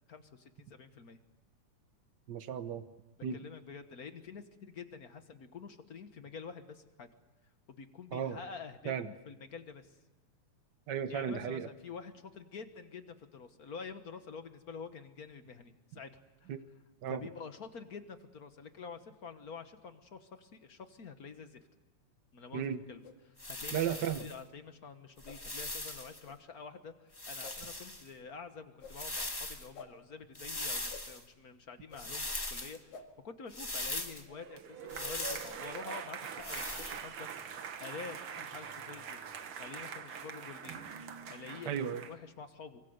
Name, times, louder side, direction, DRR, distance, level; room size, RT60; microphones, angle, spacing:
voice 1, 0.1-1.2 3.3-7.1 7.7-10.0 11.1-16.1 16.4-16.5 17.1-21.7 22.3-23.8 24.2-39.2 39.6-40.8 41.3-41.7 42.1-42.8, left 5 dB, 50° left, 8 dB, 1.1 m, -48 dB
voice 2, 2.3-2.8 3.2-3.4 8.1-8.4 8.8-9.1 10.9-11.7 16.5-16.6 17.0-17.2 22.5-22.8 23.7-24.3 41.7-42.0, right 8 dB, 90° right, 11 dB, 0.9 m, -34 dB
sound 1, 23.0-23.2 24.1-24.3 25.2-25.4 26.2-26.4 27.4-27.6 28.8-29.0 29.7-29.9 30.9-31.0 31.9-32.0 32.9-33.1, left 5 dB, 80° left, 3.4 m, -50 dB
sound 2, 23.4-24.3 25.2-26.2 27.1-28.1 28.8-29.7 30.3-31.2 32.0-32.8 33.5-34.2 34.9-35.6 36.4-37.0, left 2 dB, 15° left, 0.8 m, -40 dB
sound 3, 34.3-42.1, right 7 dB, 55° right, 2.0 m, -44 dB
24.5 x 24.0 x 8.0 m, 1.1 s
omnidirectional pair, 3.4 m